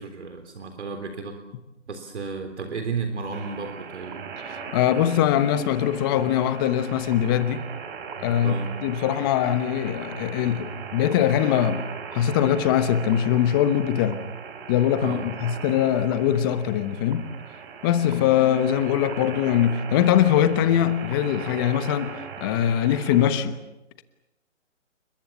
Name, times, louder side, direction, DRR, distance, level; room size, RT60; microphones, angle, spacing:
voice 1, 0.0-1.4 1.9-4.2 8.4-8.8 15.0-15.3, right 4 dB, 65° right, 3.7 m, -33 dB
sound 1, 3.3-23.3, right 6 dB, 45° right, 3.8 m, -39 dB
voice 2, 4.7-7.6 8.2-8.6 8.8-14.2 14.7-17.3 17.8-22.1 22.4-23.6, left 10 dB, 20° left, 1.0 m, -22 dB
30.0 x 22.0 x 7.2 m
hypercardioid pair, 150°, 37 cm